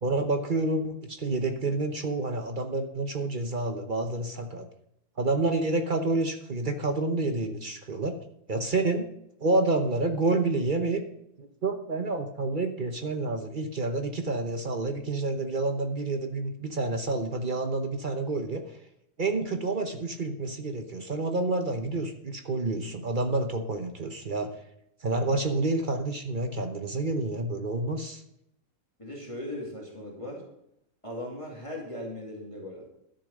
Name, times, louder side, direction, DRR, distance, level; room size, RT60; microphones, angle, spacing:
voice 1, 0.0-4.7 5.2-8.2 8.5-9.1 9.4-11.0 11.4-18.6 19.2-24.5 25.0-28.2, right 2 dB, 40° right, 7 dB, 1.0 m, -29 dB
voice 2, 29.0-30.4 31.0-32.9, left 1 dB, 25° left, -3 dB, 2.4 m, -38 dB
12.5 x 7.1 x 6.4 m, 0.80 s
omnidirectional pair, 1.4 m